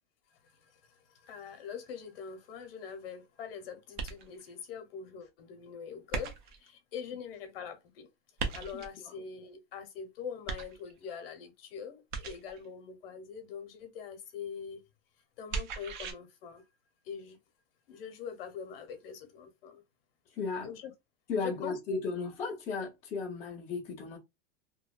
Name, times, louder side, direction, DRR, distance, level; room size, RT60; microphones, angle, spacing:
voice 1, 0.3-8.1 8.5-14.8 15.4-16.6 17.0-17.4 17.9-19.8 20.6-20.9 21.4-21.8, left 7 dB, 55° left, 0.7 m, -43 dB
sound 1, 4.0-4.5 6.1-6.7 8.4-9.0 10.5-11.1 12.1-12.7 15.5-16.1, right 4 dB, 45° right, 0.5 m, -37 dB
voice 2, 20.3-20.7 21.3-24.2, left 4 dB, 10° left, 0.4 m, -35 dB
2.7 x 2.1 x 2.2 m
supercardioid pair, 175°, 36 cm